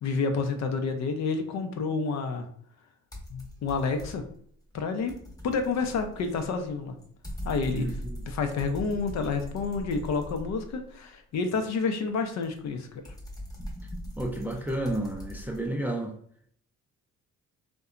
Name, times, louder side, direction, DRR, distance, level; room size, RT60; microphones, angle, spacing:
voice 1, 0.0-2.5 3.3-4.2 4.7-5.1 5.4-7.0 7.4-8.0 8.3-13.1, left 4 dB, 65° left, 6 dB, 0.6 m, -29 dB
sound 1, 3.1-4.4 4.7-10.9 12.4-15.7, equal, 10° left, 0.8 m, -41 dB
voice 2, 7.7-8.2 14.2-16.1, right 1 dB, 5° right, 2 dB, 0.4 m, -31 dB
2.7 x 2.2 x 2.4 m, 0.64 s
cardioid pair, 90°, 30 cm